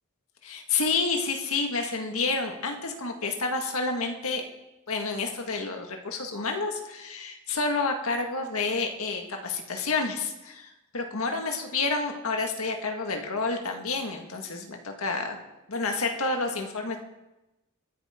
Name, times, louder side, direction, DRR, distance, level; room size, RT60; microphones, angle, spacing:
voice 1, 0.4-4.4 4.9-15.4 15.7-17.0, left 3 dB, 75° left, 3 dB, 1.8 m, -29 dB
23.5 x 10.5 x 3.7 m, 0.98 s
head